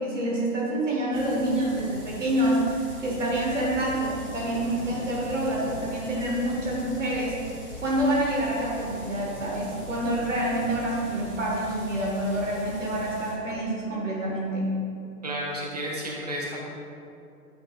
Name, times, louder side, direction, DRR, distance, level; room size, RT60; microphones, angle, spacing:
voice 1, 0.0-7.5 7.8-14.7, right 1 dB, 50° right, -4 dB, 1.4 m, -27 dB
sound 1, 1.1-13.3, left 2 dB, 10° right, 1.1 m, -42 dB
Thunder, 2.0-12.3 12.6-12.7, equal, 20° left, 1.1 m, -46 dB
voice 2, 15.2-16.7, equal, 25° right, -3 dB, 0.6 m, -32 dB
8.4 x 6.0 x 2.5 m, 2.6 s
hypercardioid pair, 165°, 47 cm